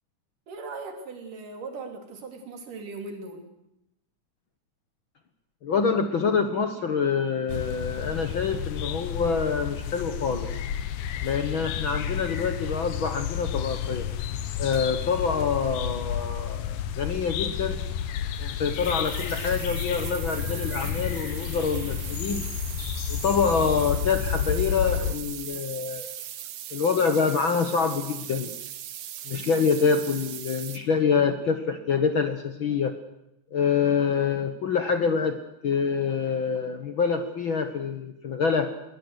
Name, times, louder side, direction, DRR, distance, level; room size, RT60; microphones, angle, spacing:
voice 1, 0.5-3.5, right 3 dB, 85° right, 5 dB, 4.6 m, -39 dB
voice 2, 5.6-10.6 11.2-14.1 14.6-17.8 18.4-22.4 23.1-26.1 26.7-28.5 29.2-32.9 33.5-38.7, left 5 dB, 55° left, 8 dB, 1.4 m, -26 dB
sound 1, 7.5-25.1, left 9 dB, 85° left, 2.7 m, -31 dB
sound 2, 18.4-30.8, right 11 dB, 65° right, 2.3 m, -39 dB
22.5 x 19.0 x 8.1 m, 0.86 s
omnidirectional pair, 3.6 m